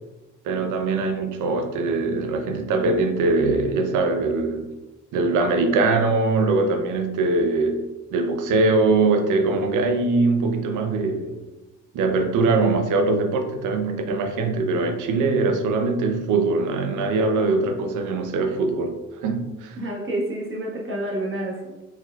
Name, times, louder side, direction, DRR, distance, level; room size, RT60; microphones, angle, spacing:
voice 1, 0.4-4.7 5.1-11.4 11.9-19.0 19.2-19.8, right 3 dB, 85° right, 6 dB, 0.6 m, -22 dB
voice 2, 19.8-21.8, right 1 dB, 45° right, -3 dB, 1.4 m, -29 dB
4.3 x 4.1 x 2.3 m, 1.1 s
cardioid pair, 90°, 30 cm